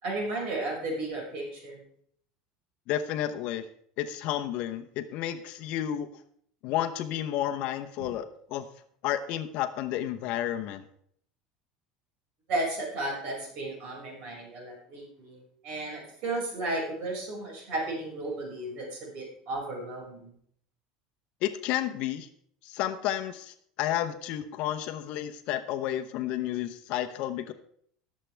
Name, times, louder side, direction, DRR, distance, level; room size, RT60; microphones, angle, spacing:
voice 1, 0.0-1.8 8.0-8.1 12.5-15.4 15.6-20.3, right 2 dB, 50° right, -2 dB, 5.7 m, -34 dB
voice 2, 2.9-3.6 4.0-6.1 6.6-8.7 9.0-10.8 21.4-22.3 22.6-27.5, left 12 dB, 50° left, 9 dB, 0.8 m, -31 dB
19.0 x 7.4 x 3.4 m, 0.64 s
cardioid pair, 165°, 3 cm